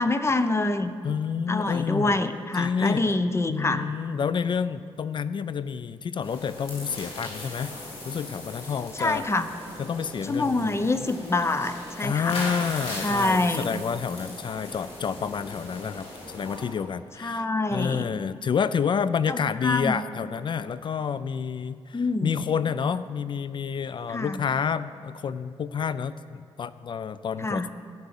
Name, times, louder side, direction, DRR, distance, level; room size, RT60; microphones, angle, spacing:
voice 1, 0.0-0.9 1.5-3.9 8.9-9.5 10.2-12.4 13.0-13.8 17.2-18.1 19.3-20.0 21.9-22.4 24.1-24.4 27.4-27.7, left 2 dB, 25° left, 10 dB, 0.8 m, -26 dB
voice 2, 1.0-2.2 2.5-3.2 3.5-9.3 9.8-10.8 12.0-16.1 16.3-17.5 17.7-27.7, left 6 dB, 55° left, 15 dB, 0.4 m, -29 dB
sound 1, 6.2-16.6, left 1 dB, 90° left, 3.8 m, -39 dB
12.0 x 9.4 x 7.1 m, 2.2 s
cardioid pair, 75°, 10 cm